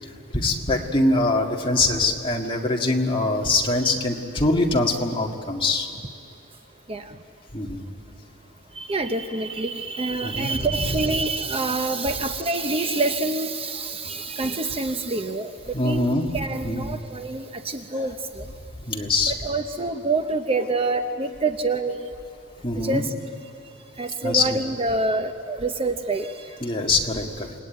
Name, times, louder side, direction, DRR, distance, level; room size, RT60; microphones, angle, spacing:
voice 1, 0.0-5.9 7.5-7.8 10.2-11.0 15.7-16.4 16.6-16.9 18.0-18.1 18.8-19.3 22.6-23.0 24.2-24.6 26.6-27.6, left 2 dB, 25° left, 1 dB, 1.9 m, -23 dB
voice 2, 8.8-15.5 15.8-18.4 19.3-22.1 22.8-23.1 24.0-26.3, right 3 dB, 25° right, 7 dB, 0.8 m, -26 dB
28.0 x 20.0 x 9.2 m, 2.7 s
head